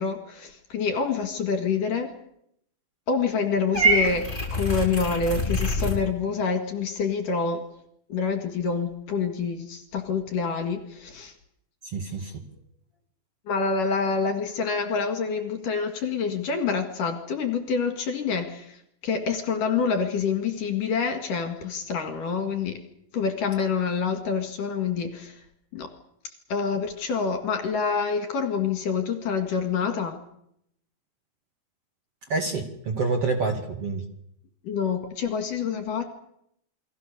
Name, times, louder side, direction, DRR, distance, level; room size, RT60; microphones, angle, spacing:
voice 1, 0.0-2.1 3.1-7.6 8.1-11.3 13.5-18.8 19.0-22.8 23.1-25.4 25.7-25.9 26.5-30.2 34.6-36.0, left 5 dB, 55° left, 6 dB, 3.2 m, -27 dB
Purr / Meow, 3.7-6.0, right 1 dB, 10° left, 5.5 m, -25 dB
voice 2, 11.9-12.4 32.3-34.0, right 3 dB, 40° right, 5 dB, 2.6 m, -27 dB
29.0 x 22.5 x 6.8 m, 0.74 s
omnidirectional pair, 5.2 m